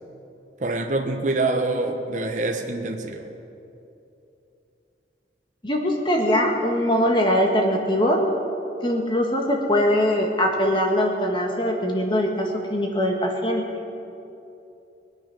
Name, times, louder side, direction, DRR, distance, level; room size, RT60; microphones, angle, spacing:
voice 1, 0.6-3.3, right 2 dB, 45° right, 3 dB, 1.0 m, -25 dB
voice 2, 5.6-8.2 8.8-13.8, equal, 25° left, 1 dB, 1.6 m, -22 dB
21.0 x 9.7 x 6.1 m, 2.8 s
head